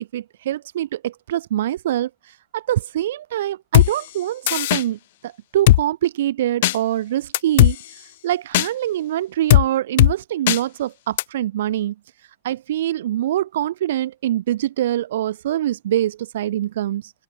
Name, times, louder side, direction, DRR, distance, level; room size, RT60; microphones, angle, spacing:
voice 1, 0.0-2.1 2.5-7.8 8.2-11.9 12.4-17.1, right 12 dB, 60° right, 5.9 m, -24 dB
Drum kit, 3.7-3.9 4.5-4.8 5.7-5.8 6.6-6.8 7.3-7.7 8.5-8.7 9.5-9.7 10.0-10.1 10.5-10.6 11.2-11.3, left 16 dB, 55° left, 2.6 m, -14 dB
figure-of-eight pair, 90°, 0 cm